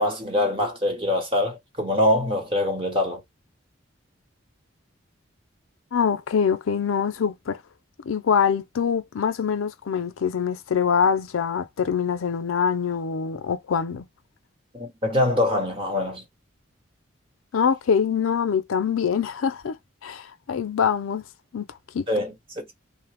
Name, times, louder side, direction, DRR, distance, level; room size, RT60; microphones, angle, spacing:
voice 1, 0.0-3.2 14.7-16.2 22.1-22.7, left 1 dB, 25° right, 1.0 m, -24 dB
voice 2, 5.9-7.6 8.1-14.0 17.5-19.8 20.0-21.2 21.5-21.7 21.9-22.0, left 7 dB, 90° left, 0.5 m, -24 dB
3.2 x 2.0 x 3.4 m
head